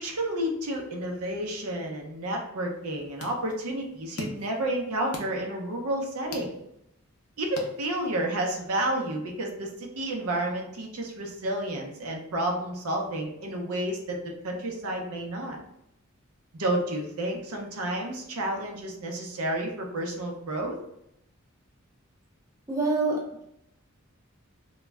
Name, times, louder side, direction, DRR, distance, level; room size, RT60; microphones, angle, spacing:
voice 1, 0.0-6.5 7.4-14.2 14.4-15.6 16.6-20.8, right 1 dB, 80° right, 1 dB, 0.6 m, -30 dB
sound 1, 2.7-8.3, left 1 dB, 85° left, 0.6 m, -44 dB
voice 2, 22.7-23.4, right 3 dB, 15° right, -3 dB, 0.4 m, -26 dB
2.2 x 2.0 x 3.3 m, 0.79 s
head